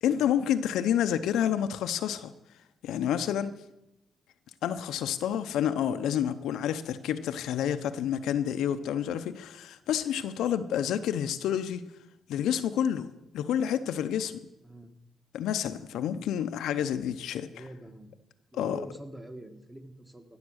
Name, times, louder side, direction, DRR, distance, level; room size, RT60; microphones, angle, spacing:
voice 1, 0.0-2.3 2.8-3.5 4.6-11.9 12.3-13.1 13.3-14.4 15.3-17.6 18.5-18.8, left 9 dB, 80° left, 0.7 m, -29 dB
voice 2, 14.6-14.9 16.0-16.1 17.5-18.1 18.5-20.4, right 1 dB, 10° right, 1.6 m, -45 dB
17.0 x 7.2 x 6.4 m
cardioid pair, 90°, 0 cm